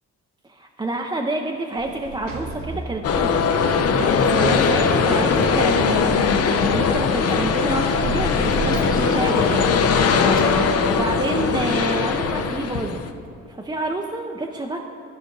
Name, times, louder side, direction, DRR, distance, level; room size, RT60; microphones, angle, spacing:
voice 1, 0.4-3.4 4.0-9.6 10.4-13.0 13.5-14.8, right 2 dB, 15° right, 1 dB, 0.6 m, -28 dB
Sliding door, 1.8-11.9, right 3 dB, 70° right, 1.1 m, -35 dB
sound 1, 3.0-13.1, left 5 dB, 55° left, 0.7 m, -20 dB
Sliding door 2, 3.6-11.1, left 2 dB, 30° left, 1.4 m, -32 dB
14.5 x 5.0 x 3.9 m, 2.6 s
cardioid pair, 90°, 30 cm